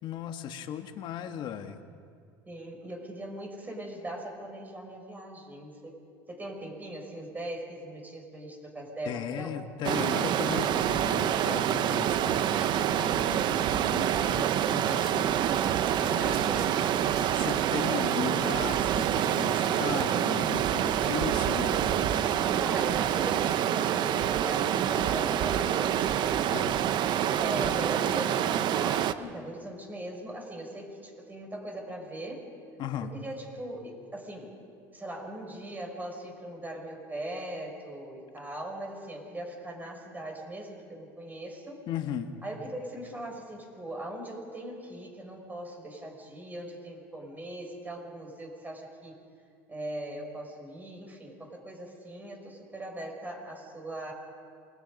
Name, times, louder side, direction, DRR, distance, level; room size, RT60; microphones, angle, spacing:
voice 1, 0.0-1.8 9.1-15.3 15.6-15.7 16.0-16.8 17.3-22.6 26.5-26.9 32.8-33.1 41.9-42.3, left 9 dB, 55° left, 7 dB, 1.8 m, -37 dB
voice 2, 2.5-5.9 6.3-9.6 16.2-16.9 18.1-18.3 22.5-26.3 27.4-32.5 33.0-34.6 34.9-41.8 42.4-49.2 49.7-54.1, right 1 dB, 20° right, 1 dB, 6.1 m, -40 dB
Stream, 9.8-29.1, right 10 dB, 55° right, 0.9 m, -27 dB
Domestic sounds home sounds, 16.0-19.8 20.1-20.3 20.5-20.6, right 6 dB, 75° right, 5.2 m, -48 dB
28.0 x 22.0 x 5.4 m, 2.3 s
supercardioid pair, 100°, 9 cm